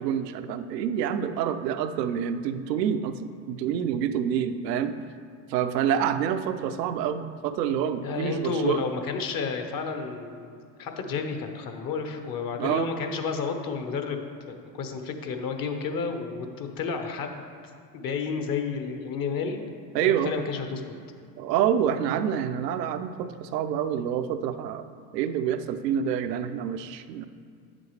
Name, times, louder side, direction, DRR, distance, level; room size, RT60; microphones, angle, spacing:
voice 1, 0.0-5.0 5.5-8.8 12.6-12.9 19.9-20.3 21.4-24.9 25.1-27.3, right 9 dB, 85° right, 10 dB, 0.6 m, -27 dB
voice 2, 8.0-17.4 17.9-19.6 20.0-20.8, left 5 dB, 45° left, 5 dB, 1.0 m, -31 dB
8.9 x 7.5 x 3.2 m, 2.2 s
hypercardioid pair, 85°, 48 cm